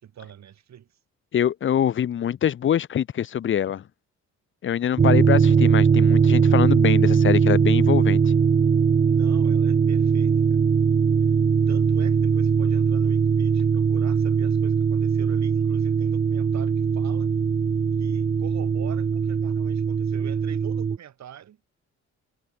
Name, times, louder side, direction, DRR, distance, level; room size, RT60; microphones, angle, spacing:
voice 1, 0.0-1.0 9.1-10.6 11.2-11.3 11.7-17.3 18.0-21.6, right 10 dB, 65° right, 3.4 m, -44 dB
voice 2, 1.3-3.8 4.6-8.2, left 9 dB, 40° left, 0.6 m, -24 dB
sound 1, 5.0-21.0, right 6 dB, 25° right, 0.6 m, -20 dB
cardioid pair, 90°, 30 cm